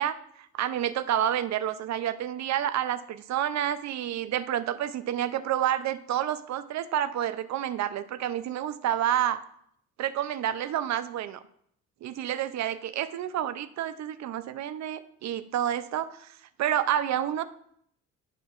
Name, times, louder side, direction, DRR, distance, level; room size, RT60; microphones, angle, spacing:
voice 1, 0.0-9.4 10.0-11.4 12.0-16.3 16.6-17.4, right 11 dB, 65° right, 12 dB, 0.5 m, -29 dB
11.5 x 4.5 x 2.5 m, 0.68 s
cardioid pair, 90°, 30 cm